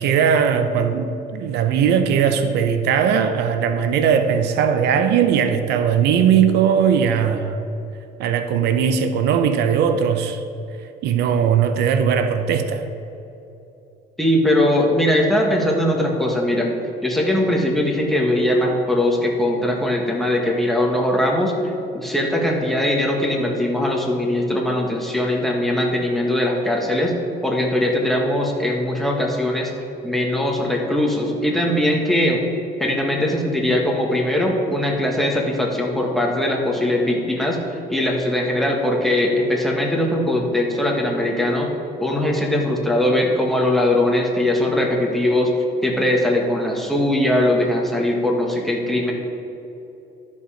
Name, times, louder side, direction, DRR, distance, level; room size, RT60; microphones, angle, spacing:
voice 1, 0.0-7.6 8.2-10.4 11.0-12.9, right 7 dB, 80° right, 9 dB, 0.7 m, -19 dB
voice 2, 14.2-16.8 17.0-21.5 21.9-27.1 27.4-29.7 30.0-32.4 32.8-37.6 37.9-41.7 42.0-45.5 45.8-49.1, left 1 dB, ahead, -1 dB, 1.7 m, -20 dB
12.5 x 5.4 x 5.1 m, 3.0 s
cardioid pair, 110°, 17 cm